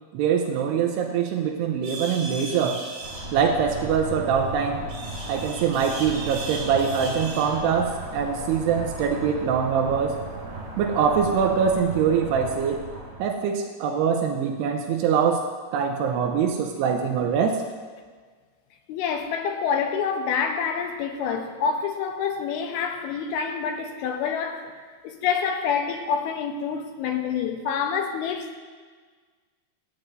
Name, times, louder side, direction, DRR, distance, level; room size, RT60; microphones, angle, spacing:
voice 1, 0.1-2.8 3.3-4.9 5.3-10.2 10.8-12.8 13.2-15.5 15.7-17.6, right 7 dB, 85° right, 2.8 m, -23 dB
sound 1, 1.8-3.3 4.9-7.5, right 2 dB, 65° right, 6.1 m, -37 dB
sound 2, 3.0-13.2, right 2 dB, 40° right, 2.0 m, -36 dB
voice 2, 18.9-24.7 25.0-28.6, left 6 dB, 80° left, 2.7 m, -27 dB
24.5 x 9.2 x 2.6 m
omnidirectional pair, 4.7 m